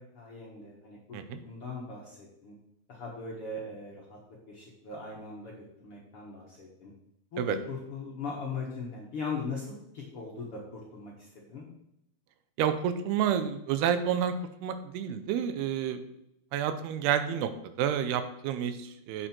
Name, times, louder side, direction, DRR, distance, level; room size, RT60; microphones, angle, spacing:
voice 1, 0.0-1.0 1.3-2.5 2.9-4.2 4.5-6.9 7.3-11.7, left 4 dB, 55° left, -4 dB, 1.6 m, -40 dB
voice 2, 12.6-16.0 16.5-17.5 17.8-19.3, right 9 dB, 85° right, 10 dB, 2.7 m, -29 dB
9.1 x 6.8 x 4.4 m, 0.78 s
omnidirectional pair, 4.6 m